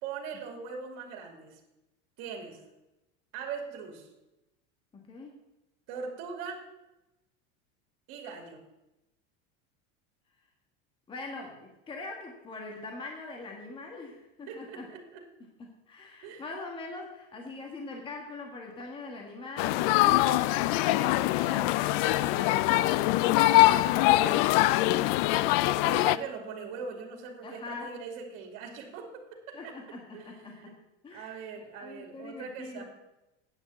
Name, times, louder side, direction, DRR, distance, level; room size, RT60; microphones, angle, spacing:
voice 1, 0.0-1.6 2.2-2.6 3.3-4.1 5.9-6.6 8.1-8.6 14.5-15.2 16.2-16.4 24.1-24.4 25.6-30.7 31.1-32.8, right 5 dB, 55° right, 3 dB, 2.5 m, -41 dB
voice 2, 4.9-5.4 11.1-14.9 15.6-20.2 20.8-25.1 25.4-25.7 27.4-27.9 29.5-32.8, left 3 dB, 15° left, 1 dB, 1.5 m, -43 dB
sound 1, 19.6-26.2, left 17 dB, 55° left, 0.4 m, -23 dB
9.3 x 6.4 x 8.4 m, 0.96 s
cardioid pair, 165°, 30 cm